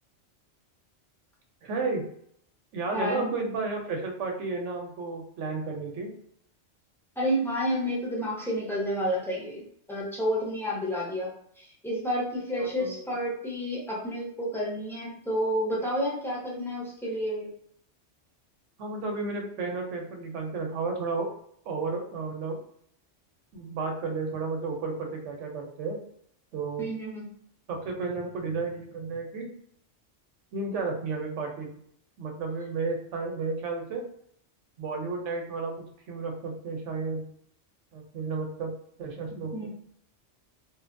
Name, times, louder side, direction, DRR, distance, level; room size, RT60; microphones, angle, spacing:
voice 1, 1.6-2.0 2.7-6.1 12.6-13.1 18.8-21.3 21.7-22.6 23.5-26.0 26.5-26.9 27.7-29.5 30.5-31.7 32.2-34.0 34.8-37.3 37.9-38.7 39.0-39.7, right 4 dB, 80° right, 2 dB, 1.0 m, -32 dB
voice 2, 2.9-3.3 7.2-11.3 11.6-17.5 26.8-27.2 39.5-39.7, equal, 5° left, -5 dB, 0.4 m, -30 dB
2.7 x 2.2 x 2.5 m, 0.66 s
omnidirectional pair, 1.2 m